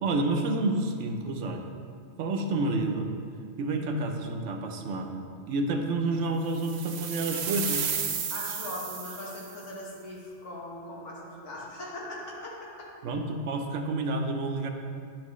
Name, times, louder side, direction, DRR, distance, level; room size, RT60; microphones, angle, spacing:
voice 1, 0.0-1.6 2.2-3.1 3.6-7.9 13.0-14.7, right 2 dB, 90° right, 4 dB, 1.0 m, -29 dB
sound 1, 6.6-9.6, right 6 dB, 50° right, 0.5 m, -33 dB
voice 2, 8.3-12.9, left 1 dB, 85° left, -4 dB, 1.6 m, -40 dB
10.0 x 6.1 x 3.1 m, 2.3 s
omnidirectional pair, 1.2 m